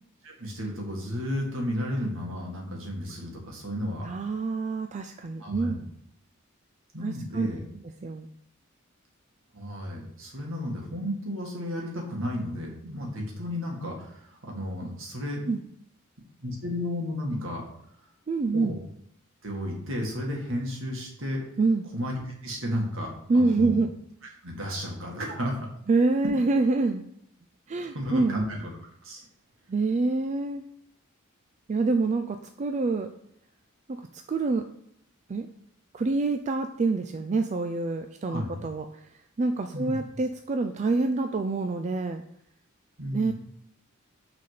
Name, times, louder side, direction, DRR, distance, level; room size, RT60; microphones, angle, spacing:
voice 1, 0.2-4.1 5.4-5.8 6.9-7.6 9.5-14.1 14.4-15.4 16.4-17.6 18.5-18.8 19.4-21.4 21.9-23.8 24.4-25.6 27.9-28.7 29.0-29.2 38.2-38.6 39.7-40.0 43.0-43.3, equal, 65° right, -1 dB, 2.0 m, -33 dB
voice 2, 4.0-5.8 7.0-7.5 8.0-8.3 15.5-15.6 18.3-18.8 21.6-21.9 23.3-23.9 25.9-27.0 27.7-28.4 29.7-30.6 31.7-33.1 33.9-34.0 34.3-34.6 35.3-35.5 35.9-38.8 39.4-42.2 43.1-43.3, right 3 dB, 35° right, 7 dB, 0.4 m, -26 dB
6.3 x 4.1 x 5.7 m, 0.72 s
head